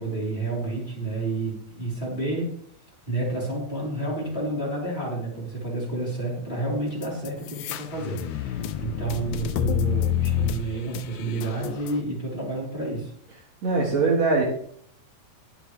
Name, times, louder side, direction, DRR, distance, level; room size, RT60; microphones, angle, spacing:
voice 1, 0.0-2.5 3.1-13.1, right 2 dB, 15° left, -5 dB, 4.1 m, -30 dB
sound 1, 7.0-12.0, left 9 dB, 90° left, 1.6 m, -28 dB
voice 2, 13.6-14.4, right 3 dB, 55° right, -1 dB, 2.5 m, -21 dB
20.5 x 7.1 x 3.4 m, 0.63 s
omnidirectional pair, 4.3 m